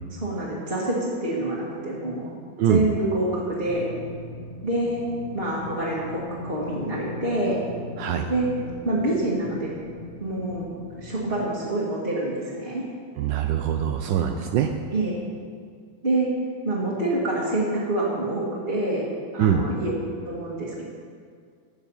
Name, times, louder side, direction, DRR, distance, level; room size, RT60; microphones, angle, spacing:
voice 1, 0.1-2.3 2.6-3.9 4.6-5.0 5.3-7.6 8.3-8.5 8.8-9.7 10.2-10.6 11.0-12.8 14.9-15.1 16.0-16.3 16.6-18.4 18.7-19.1 19.3-19.9 20.2-20.8, right 1 dB, 30° right, -7 dB, 2.1 m, -26 dB
sound 1, 3.7-11.5, left 2 dB, 40° left, 0.9 m, -39 dB
voice 2, 13.2-14.7 19.4-19.7, right 9 dB, 80° right, 5 dB, 1.3 m, -23 dB
16.0 x 7.1 x 5.6 m, 2.1 s
omnidirectional pair, 2.0 m